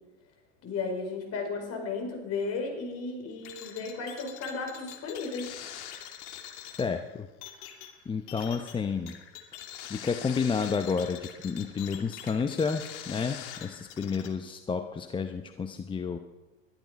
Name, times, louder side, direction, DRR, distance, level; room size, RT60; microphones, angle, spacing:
voice 1, 0.6-5.5, left 4 dB, 35° left, 3 dB, 5.2 m, -34 dB
sound 1, 3.4-14.3, left 10 dB, 60° left, 2.4 m, -44 dB
voice 2, 6.8-7.3 8.1-9.1 9.8-16.2, left 5 dB, 10° left, 8 dB, 0.7 m, -30 dB
21.0 x 12.0 x 5.3 m, 1.1 s
hypercardioid pair, 100°, 40 cm